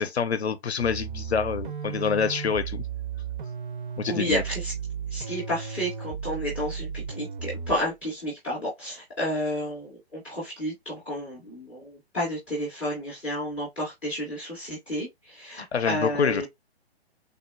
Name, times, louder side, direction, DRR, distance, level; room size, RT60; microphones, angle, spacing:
voice 1, 0.0-2.8 4.0-4.4 15.6-16.5, left 6 dB, 80° left, 0.5 m, -27 dB
sound 1, 0.8-7.9, right 7 dB, 50° right, 0.5 m, -35 dB
voice 2, 4.1-4.7 5.1-16.5, equal, 5° left, 0.3 m, -31 dB
3.5 x 2.1 x 2.3 m
figure-of-eight pair, 125°, 32 cm